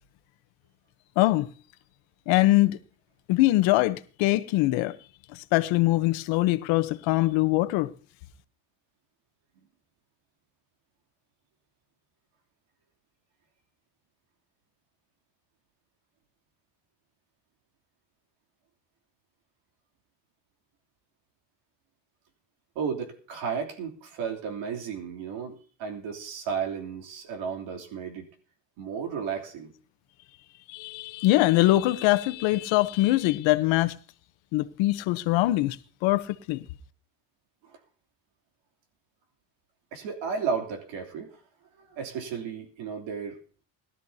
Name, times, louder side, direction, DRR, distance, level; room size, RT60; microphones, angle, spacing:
voice 1, 1.2-1.5 2.3-2.8 3.3-4.9 5.3-7.9 30.7-33.9 34.5-35.8 36.0-36.6, left 17 dB, 80° left, 1.0 m, -23 dB
voice 2, 22.7-28.3 28.8-29.7 37.7-37.8 39.9-41.4 41.9-43.4, right 6 dB, 75° right, 3.2 m, -33 dB
21.0 x 12.5 x 2.8 m
cardioid pair, 120°, 46 cm